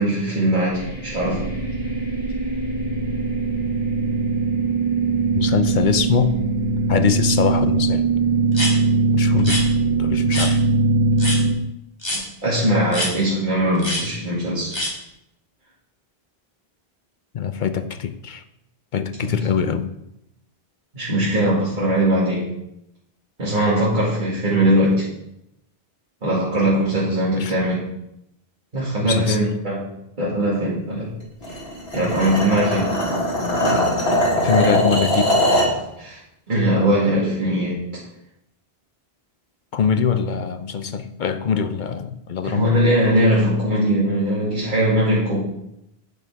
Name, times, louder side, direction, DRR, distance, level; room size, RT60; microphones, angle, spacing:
voice 1, 0.0-1.4 12.4-14.8 19.2-19.3 20.9-22.5 23.4-25.1 26.2-27.8 28.7-31.1 31.9-32.9 36.0-36.2 36.5-37.8 42.4-45.4, right 1 dB, 50° right, -9 dB, 2.2 m, -20 dB
sound 1, 0.7-11.5, right 3 dB, 10° left, 3.8 m, -21 dB
voice 2, 5.3-6.4 6.9-8.1 9.1-9.6 10.0-10.6 17.3-18.4 18.9-19.9 27.4-27.6 29.0-29.4 34.4-35.4 39.7-42.7, left 7 dB, 55° left, 9 dB, 0.7 m, -23 dB
sound 2, 8.5-8.7 9.4-9.6 10.3-10.5 11.2-11.4 12.0-12.2 12.9-13.1 13.8-14.0 14.7-14.9, left 1 dB, 25° left, 2.3 m, -24 dB
sound 3, 31.4-35.8, equal, 75° left, 2.2 m, -21 dB
10.0 x 6.0 x 3.5 m, 0.82 s
omnidirectional pair, 1.1 m